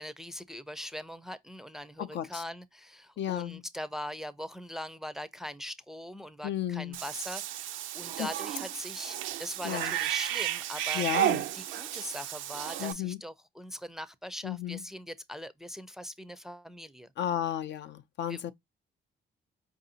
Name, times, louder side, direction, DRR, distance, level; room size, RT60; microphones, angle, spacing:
voice 1, 0.0-11.3 11.5-17.1 18.3-18.4, left 1 dB, ahead, 0.5 m, -41 dB
voice 2, 2.0-2.4 3.2-3.6 6.4-7.0 8.2-8.3 9.6-9.9 10.9-11.4 12.8-13.2 14.4-14.8 17.2-18.5, left 10 dB, 65° left, 0.5 m, -33 dB
Cat / Bathtub (filling or washing), 6.9-12.9, right 13 dB, 80° right, 0.5 m, -33 dB
4.8 x 2.6 x 2.7 m
cardioid pair, 90°, 20 cm